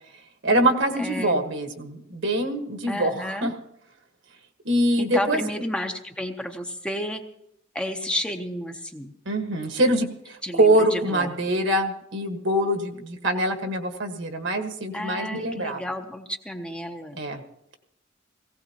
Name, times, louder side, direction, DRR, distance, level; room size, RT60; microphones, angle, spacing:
voice 1, 0.4-3.1 3.4-3.5 4.6-5.4 9.2-15.8 17.2-17.4, right 1 dB, 65° right, 5 dB, 1.5 m, -24 dB
voice 2, 1.0-1.4 2.9-3.5 5.0-7.2 7.7-9.1 10.4-11.3 14.9-17.2, left 1 dB, 5° left, 5 dB, 0.8 m, -31 dB
18.5 x 16.5 x 2.9 m, 0.77 s
head